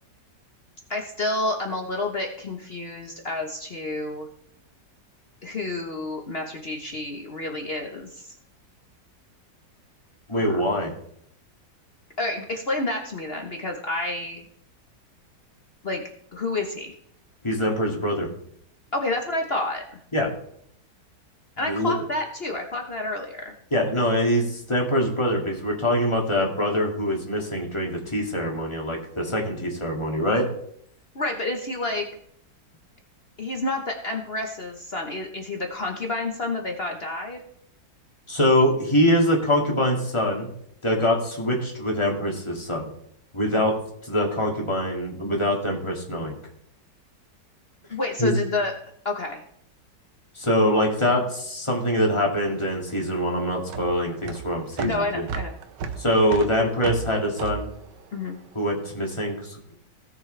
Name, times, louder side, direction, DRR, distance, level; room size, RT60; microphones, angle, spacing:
voice 1, 0.9-4.3 5.4-8.3 10.4-10.6 12.2-14.4 15.8-16.0 16.3-16.9 18.9-19.8 21.6-23.5 31.1-32.1 33.4-37.4 47.9-48.7 49.0-49.4 54.8-55.5 58.1-58.4, left 2 dB, 40° left, 2 dB, 1.2 m, -29 dB
voice 2, 10.3-10.9 17.4-18.3 20.1-20.3 21.6-21.9 23.7-30.5 38.3-40.5 40.8-42.8 43.3-43.8 44.0-46.4 48.2-48.3 50.4-55.3 56.0-57.7 58.5-59.6, equal, 15° left, -1 dB, 2.2 m, -24 dB
sound 1, 52.4-58.9, right 6 dB, 80° right, 1.5 m, -35 dB
17.5 x 6.8 x 3.3 m, 0.68 s
omnidirectional pair, 1.9 m